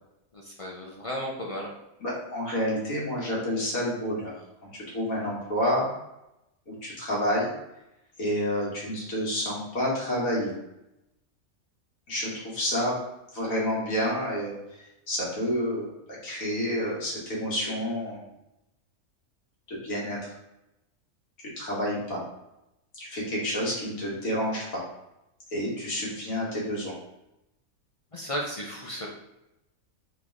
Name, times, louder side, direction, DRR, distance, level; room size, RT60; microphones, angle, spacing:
voice 1, 0.3-1.7 28.1-29.1, equal, 55° left, -2 dB, 0.3 m, -34 dB
voice 2, 2.0-4.3 4.6-5.9 6.7-7.5 8.2-10.5 12.1-13.0 13.3-18.3 19.7-20.3 21.6-22.2 22.9-24.8 25.5-26.9, equal, 70° left, -5 dB, 1.8 m, -29 dB
3.9 x 3.1 x 3.7 m, 0.90 s
omnidirectional pair, 1.5 m